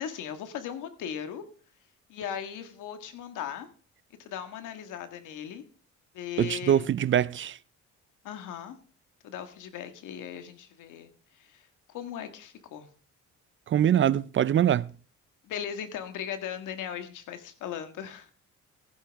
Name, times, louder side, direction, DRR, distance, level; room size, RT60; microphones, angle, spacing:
voice 1, 0.0-1.4 2.1-3.7 4.2-5.6 6.1-6.9 8.2-8.8 9.2-12.9 15.4-18.3, left 9 dB, 85° left, 1.7 m, -38 dB
voice 2, 6.4-7.6 13.7-14.9, right 10 dB, 40° right, 0.4 m, -23 dB
14.5 x 11.5 x 3.5 m
cardioid pair, 90°, 30 cm